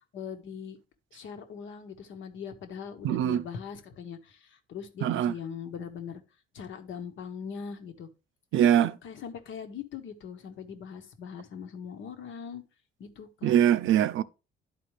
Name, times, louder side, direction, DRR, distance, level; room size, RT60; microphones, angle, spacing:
voice 1, 0.1-0.8 1.1-6.2 6.5-8.1 8.8-12.6 13.0-13.6, left 7 dB, 75° left, 1.2 m, -41 dB
voice 2, 3.0-3.4 5.0-5.3 8.5-8.9 13.4-14.2, right 10 dB, 80° right, 0.5 m, -23 dB
11.0 x 4.2 x 3.2 m
cardioid pair, 90°, 20 cm